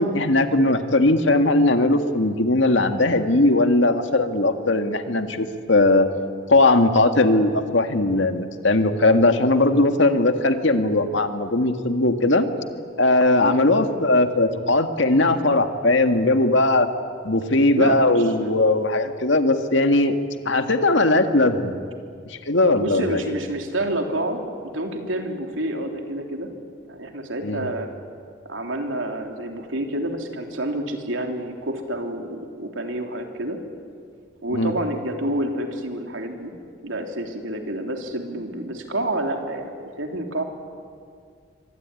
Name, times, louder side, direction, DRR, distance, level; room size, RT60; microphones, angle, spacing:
voice 1, 0.0-6.1 6.5-12.5 13.0-16.9 17.2-20.2 20.5-21.8 22.3-23.2 27.4-27.7 34.5-34.7, left 2 dB, 75° left, 7 dB, 1.9 m, -19 dB
voice 2, 17.7-18.8 22.8-26.5 26.8-27.9 28.5-33.6 34.4-36.5 36.8-40.4, right 1 dB, 85° right, 3 dB, 3.4 m, -28 dB
25.0 x 24.5 x 9.8 m, 2.2 s
head